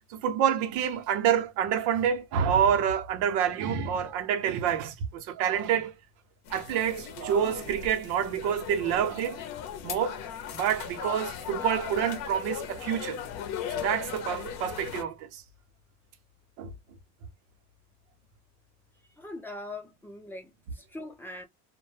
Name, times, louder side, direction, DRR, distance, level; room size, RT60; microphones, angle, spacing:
voice 1, 0.1-5.9 6.5-9.4 9.8-10.2 10.5-13.2 13.7-15.4 16.6-16.7, right 8 dB, 90° right, 0.7 m, -27 dB
sound 1, 6.5-15.0, left 8 dB, 60° left, 0.6 m, -38 dB
voice 2, 19.2-21.4, left 2 dB, 5° left, 0.5 m, -41 dB
2.1 x 2.1 x 3.1 m
cardioid pair, 145°, 29 cm